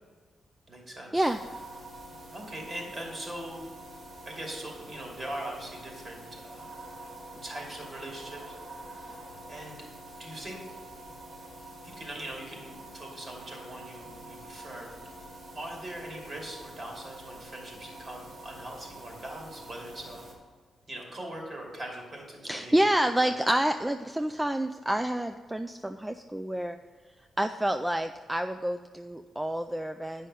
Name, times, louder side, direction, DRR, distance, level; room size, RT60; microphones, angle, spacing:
voice 1, 0.7-1.3 2.3-3.6 4.3-6.8 7.4-8.5 9.0-9.9 10.2-10.6 11.8-14.9 15.5-20.2 20.9-22.9 23.2-23.4, right 1 dB, 40° right, 0 dB, 2.8 m, -41 dB
sound 1, 1.2-20.3, right 1 dB, 55° right, 2.6 m, -46 dB
voice 2, 22.5-26.8 27.4-30.3, right 1 dB, 10° right, 7 dB, 0.3 m, -28 dB
9.6 x 5.6 x 6.2 m, 1.5 s
cardioid pair, 100°, 0 cm